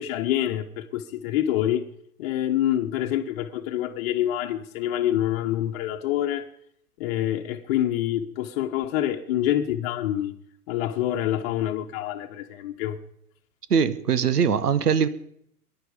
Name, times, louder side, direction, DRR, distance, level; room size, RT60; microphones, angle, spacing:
voice 1, 0.0-1.9 2.2-6.5 7.0-10.3 10.7-13.0, left 12 dB, 40° left, 1.3 m, -26 dB
voice 2, 13.7-15.1, right 7 dB, 75° right, 1.6 m, -21 dB
24.0 x 11.0 x 5.2 m
hypercardioid pair, 120°, 47 cm